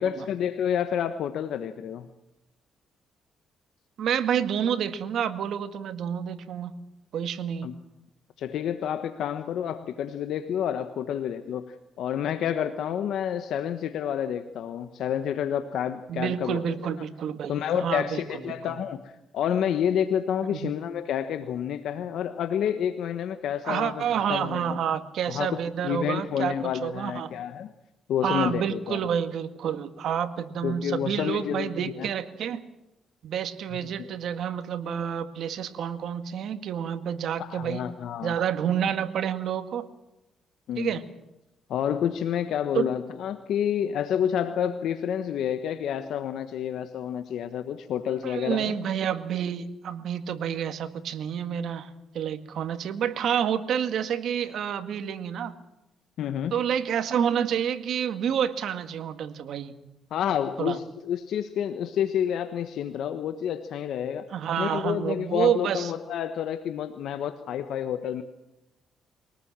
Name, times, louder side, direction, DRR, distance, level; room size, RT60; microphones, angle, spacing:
voice 1, 0.0-2.1 7.6-7.8 8.4-16.8 17.5-24.0 24.3-24.8 25.3-27.7 28.1-29.0 30.6-32.1 33.7-34.1 37.4-38.3 40.7-41.0 41.7-48.7 56.2-56.6 60.1-64.3 64.6-68.2, left 9 dB, 75° left, 9 dB, 1.3 m, -29 dB
voice 2, 4.0-6.7 7.1-7.7 16.1-18.8 20.5-20.7 23.6-27.3 28.2-32.6 33.2-37.8 38.2-39.9 40.8-41.0 42.7-42.9 48.2-51.9 52.1-55.5 56.5-59.8 60.6-60.8 64.3-65.9, right 8 dB, 70° right, 10 dB, 1.9 m, -29 dB
23.5 x 19.0 x 7.6 m, 0.91 s
cardioid pair, 90°, 0 cm